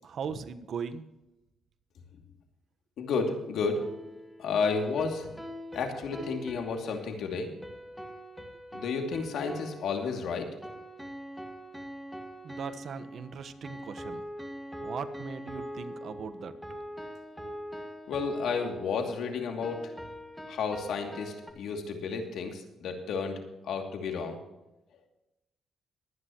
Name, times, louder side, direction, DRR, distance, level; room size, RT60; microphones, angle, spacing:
voice 1, 0.0-1.1 12.4-14.2 14.8-16.5, right 6 dB, 60° right, 9 dB, 1.2 m, -39 dB
voice 2, 3.0-3.9 4.4-5.3 5.7-7.5 8.7-10.5 18.1-19.9 20.5-24.4, left 5 dB, 75° left, 3 dB, 2.5 m, -32 dB
sound 1, 3.8-21.5, equal, ahead, 1.9 m, -43 dB
22.0 x 9.9 x 3.0 m, 0.95 s
cardioid pair, 90°, 0 cm